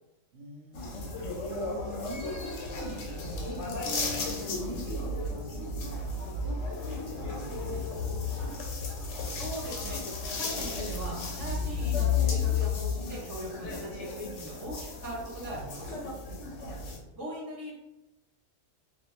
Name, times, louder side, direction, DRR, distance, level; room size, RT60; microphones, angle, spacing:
voice 1, 0.3-1.2 1.6-6.0 6.4-8.6 16.4-17.1, right 1 dB, 60° right, -4 dB, 0.7 m, -45 dB
sound 1, 0.7-17.0, left 4 dB, 70° left, 0.8 m, -33 dB
Bass guitar, 3.9-6.9, equal, 85° right, 1.0 m, -46 dB
voice 2, 9.2-16.0 17.1-17.7, equal, 25° right, -4 dB, 0.5 m, -40 dB
2.3 x 2.0 x 3.0 m, 1.0 s
omnidirectional pair, 1.4 m